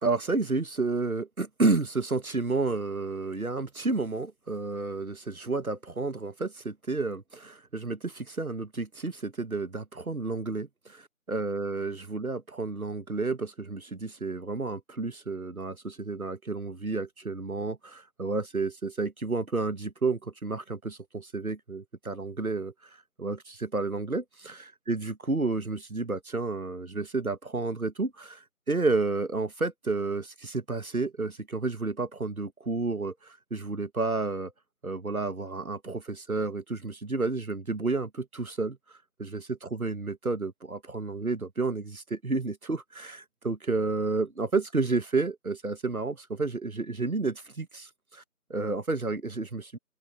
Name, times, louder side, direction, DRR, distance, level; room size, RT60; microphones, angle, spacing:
voice 1, 0.0-22.7 23.2-34.5 34.8-38.8 39.2-39.4 39.7-48.2 48.5-49.8, right 3 dB, 80° right, 1.4 m, -31 dB
open air
figure-of-eight pair, 175°, 42 cm